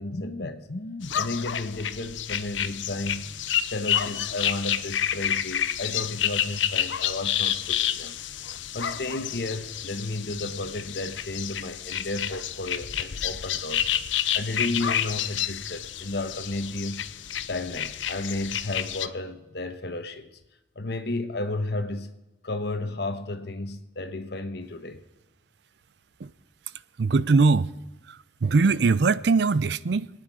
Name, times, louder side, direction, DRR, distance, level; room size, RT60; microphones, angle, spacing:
voice 1, 0.0-3.4 3.7-8.2 8.7-13.9 14.3-17.1 17.5-20.4 20.7-22.1 22.4-25.0, left 2 dB, 60° left, 1.1 m, -33 dB
sound 1, 1.0-19.1, left 10 dB, 85° left, 0.7 m, -29 dB
voice 2, 27.0-27.7 28.1-30.1, right 4 dB, 65° right, 0.5 m, -21 dB
25.0 x 9.6 x 4.8 m
head